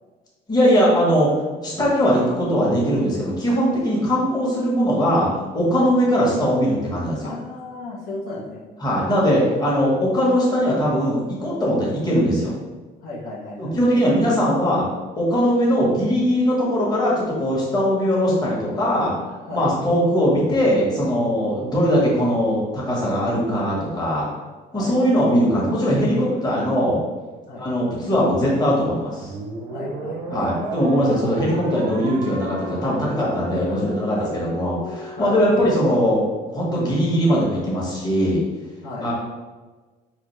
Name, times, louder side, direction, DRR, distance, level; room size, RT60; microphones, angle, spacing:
voice 1, 0.5-1.3 1.6-7.3 8.8-12.6 13.6-14.9 15.2-19.1 19.5-24.3 24.7-27.0 27.6-29.3 30.3-36.2 36.5-38.4 39.0-39.1, equal, 25° left, -5 dB, 1.2 m, -20 dB
voice 2, 7.2-8.6 13.0-14.0 19.5-19.7 24.7-25.0 27.5-27.7 29.7-30.5 33.5-33.8 34.2-34.4 35.2-35.4 38.8-39.1, left 2 dB, 65° left, -7 dB, 0.9 m, -34 dB
sound 1, 29.2-35.7, right 2 dB, 90° right, 0.6 m, -35 dB
4.0 x 2.4 x 3.1 m, 1.3 s
cardioid pair, 110°, 17 cm